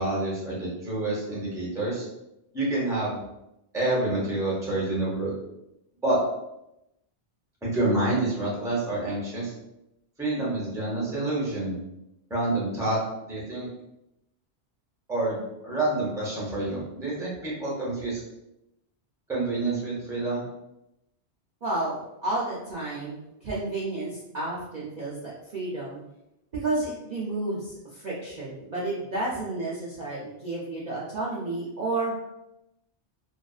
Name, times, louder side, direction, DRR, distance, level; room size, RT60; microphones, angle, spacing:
voice 1, 0.0-2.0 2.5-3.2 3.7-5.3 6.0-6.2 7.6-9.5 10.2-11.8 12.3-13.0 13.2-13.7 15.1-18.2 19.3-20.4, right 2 dB, 5° right, -5 dB, 0.5 m, -28 dB
voice 2, 21.6-26.0 26.5-32.1, right 2 dB, 50° right, -7 dB, 0.5 m, -31 dB
2.5 x 2.3 x 2.3 m, 0.88 s
omnidirectional pair, 1.2 m